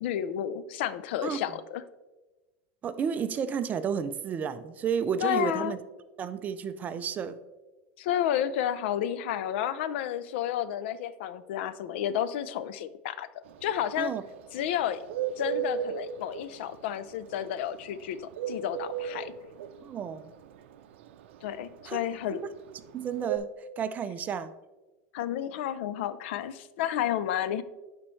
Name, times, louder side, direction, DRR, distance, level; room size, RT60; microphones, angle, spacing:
voice 1, 0.0-1.8 5.2-5.8 8.0-14.1 14.5-15.0 15.4-19.3 21.4-22.4 25.1-27.6, left 10 dB, 70° left, 0.4 m, -31 dB
voice 2, 2.8-5.8 6.2-7.4 14.0-14.2 19.8-20.3 21.9-22.0 22.3-22.5 22.9-23.5 23.8-24.5, right 7 dB, 25° right, 0.4 m, -31 dB
Bird, 13.5-23.4, right 9 dB, 85° right, 0.5 m, -34 dB
10.5 x 4.4 x 3.1 m
supercardioid pair, 140°, 6 cm